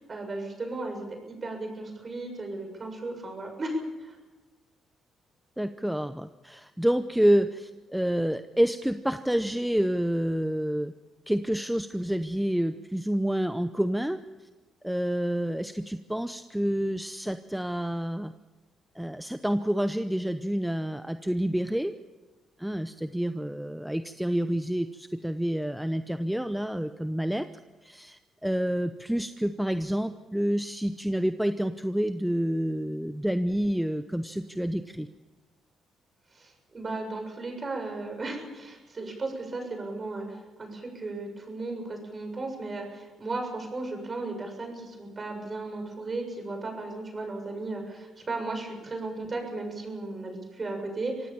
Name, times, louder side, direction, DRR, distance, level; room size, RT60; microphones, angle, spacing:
voice 1, 0.0-4.2 36.3-51.3, right 2 dB, 35° right, 3 dB, 7.0 m, -35 dB
voice 2, 5.6-10.9 11.3-14.2 14.8-18.3 19.0-21.9 22.6-27.5 27.8-35.1, equal, 5° right, 10 dB, 0.7 m, -28 dB
25.5 x 17.5 x 7.3 m, 1.2 s
cardioid pair, 90°, 0 cm